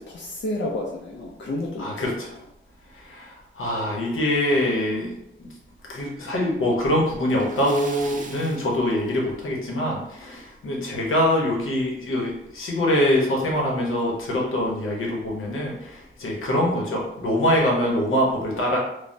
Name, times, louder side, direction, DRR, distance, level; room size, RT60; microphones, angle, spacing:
voice 1, 0.0-2.4, left 1 dB, 60° left, -3 dB, 0.5 m, -31 dB
voice 2, 1.8-2.4 2.9-5.5 5.8-18.8, left 1 dB, 85° left, -2 dB, 0.8 m, -24 dB
Splash splatter, 7.3-9.6 9.9-10.1 10.6-10.7 12.1-12.2 12.5-12.6 13.2-13.5, right 3 dB, 40° right, 0.4 m, -42 dB
3.1 x 2.0 x 2.5 m, 0.80 s
wide cardioid pair, 95°, 21 cm